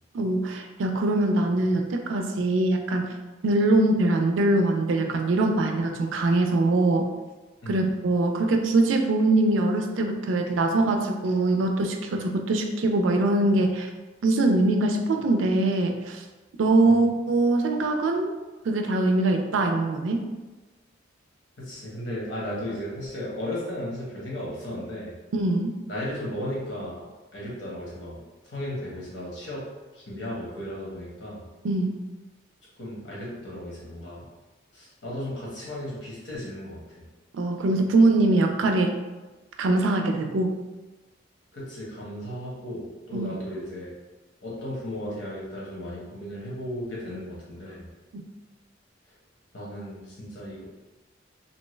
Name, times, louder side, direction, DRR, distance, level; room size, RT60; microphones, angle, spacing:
voice 1, 0.1-3.1 3.4-7.1 7.7-13.9 14.2-16.2 16.6-18.3 18.6-20.3 25.3-25.7 31.6-31.9 37.3-39.0 39.6-40.5 43.1-43.3, right 2 dB, 80° right, 4 dB, 0.4 m, -23 dB
voice 2, 21.6-25.1 25.9-27.0 27.3-28.2 28.4-29.6 29.9-31.4 32.8-34.2 34.7-36.8 41.5-43.9 44.4-47.9 49.5-50.6, left 1 dB, 70° left, -6 dB, 1.0 m, -35 dB
2.7 x 2.2 x 3.1 m, 1.2 s
head